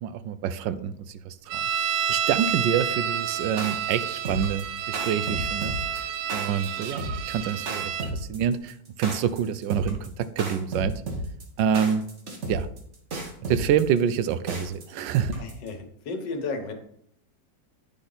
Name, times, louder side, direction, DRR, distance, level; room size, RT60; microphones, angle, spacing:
voice 1, 0.0-5.7 6.3-10.9 11.6-12.0 12.5-12.7 13.5-15.3, right 8 dB, 90° right, 13 dB, 1.3 m, -27 dB
sound 1, 1.5-8.1, right 8 dB, 65° right, 0.9 m, -29 dB
sound 2, 3.4-15.7, right 1 dB, 45° right, 1.5 m, -33 dB
voice 2, 15.4-16.7, left 4 dB, 80° left, 5 dB, 1.7 m, -33 dB
10.0 x 4.1 x 3.9 m, 0.67 s
omnidirectional pair, 1.9 m